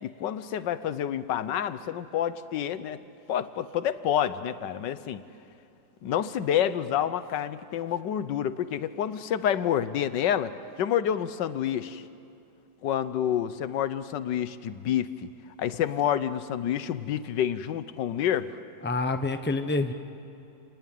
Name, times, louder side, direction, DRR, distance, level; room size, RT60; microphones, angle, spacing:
voice 1, 0.0-3.0 3.3-5.2 6.0-12.0 12.8-15.3 15.6-18.6, left 10 dB, 90° left, 13 dB, 1.5 m, -28 dB
voice 2, 18.8-19.9, left 3 dB, 10° left, 8 dB, 0.8 m, -27 dB
29.0 x 19.5 x 9.3 m, 2.7 s
omnidirectional pair, 1.9 m